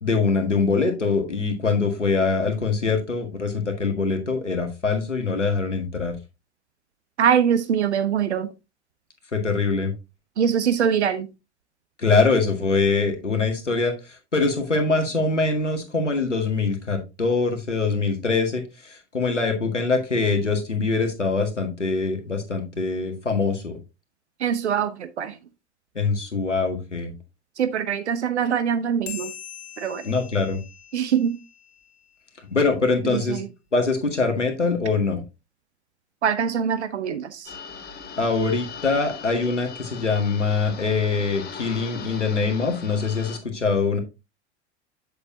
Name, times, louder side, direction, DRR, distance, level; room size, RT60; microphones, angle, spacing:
voice 1, 0.0-6.2 9.3-9.9 12.0-13.9 14.3-23.8 26.0-27.1 30.0-30.6 32.5-33.4 33.7-35.2 38.2-44.0, left 4 dB, 85° left, 1.7 m, -23 dB
voice 2, 7.2-8.5 10.4-11.3 24.4-25.3 27.6-29.3 29.8-30.0 30.9-31.4 33.1-33.5 36.2-37.5, right 8 dB, 70° right, 0.8 m, -23 dB
sound 1, 29.1-31.9, left 9 dB, 70° left, 2.8 m, -41 dB
sound 2, 37.5-43.4, left 6 dB, 25° left, 1.4 m, -39 dB
8.2 x 6.7 x 2.7 m
figure-of-eight pair, 85°, 35 cm